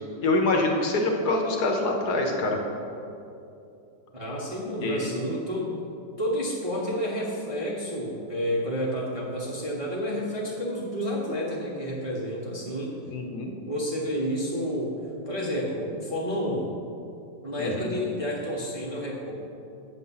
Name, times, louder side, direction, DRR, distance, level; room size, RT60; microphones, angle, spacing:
voice 1, 0.2-2.6 4.8-5.1 13.1-13.5 17.6-17.9, left 2 dB, 65° left, 2 dB, 1.3 m, -25 dB
voice 2, 4.1-5.8 6.2-13.0 13.7-16.7 17.4-19.3, equal, 25° right, -5 dB, 0.8 m, -30 dB
7.7 x 7.1 x 5.6 m, 2.7 s
omnidirectional pair, 2.0 m